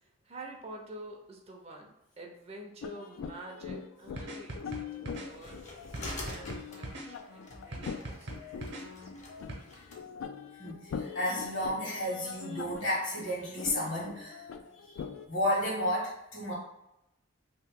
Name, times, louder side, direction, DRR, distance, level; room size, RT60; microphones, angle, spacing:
voice 1, 0.2-9.1, right 1 dB, 30° right, 0 dB, 0.5 m, -48 dB
sound 1, 2.8-15.3, left 6 dB, 90° left, 0.3 m, -43 dB
sound 2, 4.2-5.3 5.9-7.1 7.7-8.8 9.5-9.6, right 1 dB, 60° right, 0.7 m, -40 dB
sound 3, 5.1-10.0, left 2 dB, 35° left, 0.7 m, -46 dB
voice 2, 10.6-14.4 14.7-15.0 15.3-16.5, left 1 dB, 70° left, -4 dB, 1.4 m, -32 dB
2.9 x 2.6 x 3.5 m, 0.89 s
head